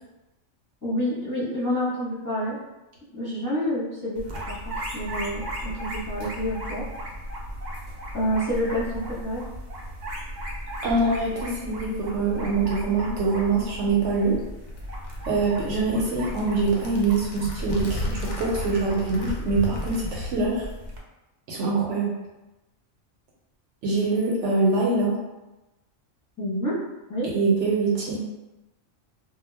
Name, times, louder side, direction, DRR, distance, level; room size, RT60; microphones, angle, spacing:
voice 1, 0.8-2.6 3.1-4.3 4.6-6.8 8.1-9.4 26.4-26.7 27.1-27.3, equal, 20° left, -10 dB, 0.6 m, -28 dB
sound 1, 4.1-21.0, equal, 85° right, 0.4 m, -36 dB
voice 2, 10.8-14.4 15.3-20.6 21.5-22.1 23.8-25.2 27.3-28.2, right 3 dB, 65° right, -4 dB, 0.8 m, -24 dB
sound 2, 14.3-20.4, left 1 dB, 65° left, 0.8 m, -34 dB
2.3 x 2.1 x 3.2 m, 1.0 s
omnidirectional pair, 1.4 m